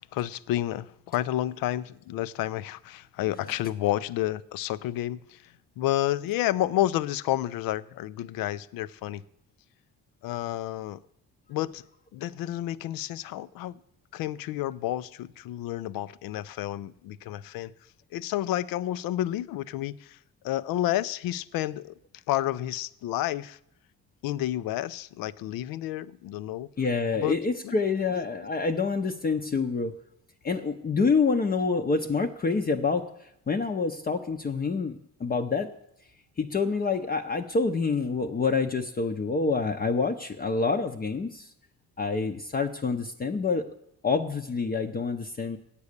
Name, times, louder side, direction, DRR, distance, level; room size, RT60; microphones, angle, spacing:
voice 1, 0.1-5.4 5.8-9.2 10.2-11.0 11.5-11.8 12.1-13.8 14.1-17.7 18.1-20.2 20.4-21.9 22.3-23.6 24.2-26.7 27.2-27.4 27.6-27.8 28.2-28.3, left 14 dB, 90° left, 0.5 m, -30 dB
voice 2, 26.8-29.9 30.4-35.7 36.4-41.5 42.0-43.6 44.0-45.6, left 4 dB, 25° left, 0.6 m, -27 dB
8.4 x 8.2 x 6.6 m
cardioid pair, 120°, 34 cm